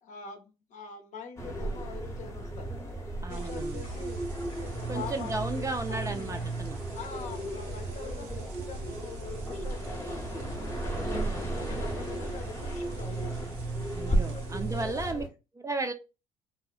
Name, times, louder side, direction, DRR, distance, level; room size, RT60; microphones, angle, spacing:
voice 1, 0.0-2.7 3.2-4.2 4.6-6.4 6.9-10.4 10.8-13.5 14.1-15.3, left 6 dB, 55° left, 4 dB, 0.6 m, -44 dB
sound 1, 1.4-15.3, right 2 dB, 20° left, 0.7 m, -34 dB
voice 2, 3.2-3.8 4.9-6.8 11.0-11.4 13.9-15.2 15.6-15.9, right 3 dB, 20° right, 6 dB, 0.4 m, -34 dB
Fire, 3.3-4.9 6.2-6.6 7.0-11.1 11.6-13.5, left 3 dB, 85° left, 0.8 m, -53 dB
sound 2, 3.3-15.1, right 5 dB, 90° right, 0.6 m, -51 dB
2.6 x 2.0 x 2.3 m, 0.29 s
supercardioid pair, 75°, 15 cm